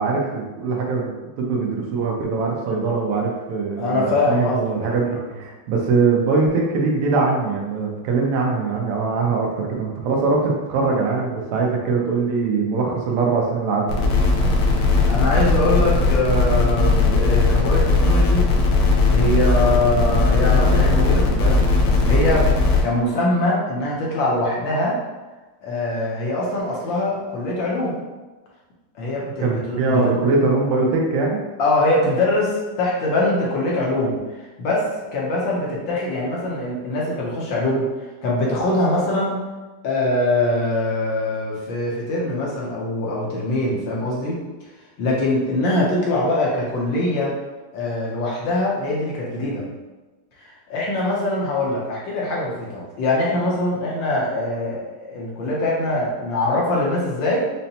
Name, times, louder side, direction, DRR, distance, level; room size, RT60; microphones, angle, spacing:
voice 1, 0.0-14.0 29.4-31.4, right 4 dB, 85° right, 0 dB, 1.6 m, -22 dB
voice 2, 3.8-5.0 14.7-18.5 18.8-22.5 22.8-25.0 25.6-27.9 28.9-30.2 31.6-37.9 38.2-39.4 39.8-44.4 45.0-47.3 47.7-49.7 50.4-57.5, left 1 dB, 70° left, -4 dB, 1.4 m, -23 dB
sound 1, 13.9-22.8, left 3 dB, 85° left, 1.6 m, -18 dB
5.3 x 2.1 x 2.8 m, 1.2 s
omnidirectional pair, 2.4 m